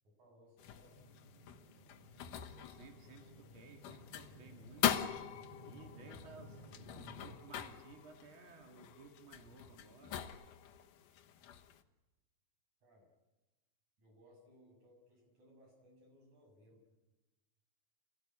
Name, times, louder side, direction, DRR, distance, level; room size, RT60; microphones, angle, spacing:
voice 1, 0.0-1.3 12.8-13.1 14.0-16.8, equal, 60° right, 0 dB, 8.6 m, -64 dB
sound 1, 0.6-11.8, left 10 dB, 85° left, 2.8 m, -42 dB
sound 2, 0.9-7.4, equal, 90° right, 3.7 m, -56 dB
voice 2, 2.2-10.2, right 5 dB, 45° right, 3 dB, 2.5 m, -58 dB
27.0 x 17.0 x 9.8 m, 1.1 s
omnidirectional pair, 3.7 m